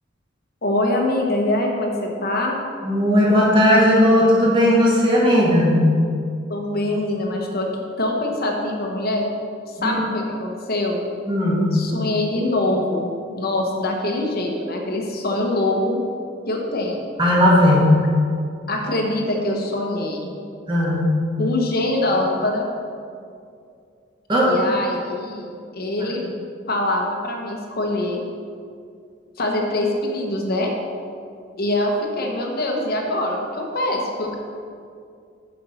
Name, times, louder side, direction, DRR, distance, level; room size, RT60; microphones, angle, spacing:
voice 1, 0.6-2.6 6.5-7.7 8.0-9.3 9.7-11.0 11.7-16.0 16.5-17.1 18.7-20.3 21.4-22.6 24.4-26.2 26.7-28.2 29.4-30.7 31.6-34.4, left 1 dB, 55° left, 0 dB, 1.0 m, -24 dB
voice 2, 2.8-5.9 9.8-10.0 11.3-11.8 17.2-18.0 20.7-21.2 24.3-24.5 26.0-26.1, left 1 dB, 25° right, -5 dB, 1.8 m, -16 dB
6.9 x 5.4 x 5.6 m, 2.4 s
head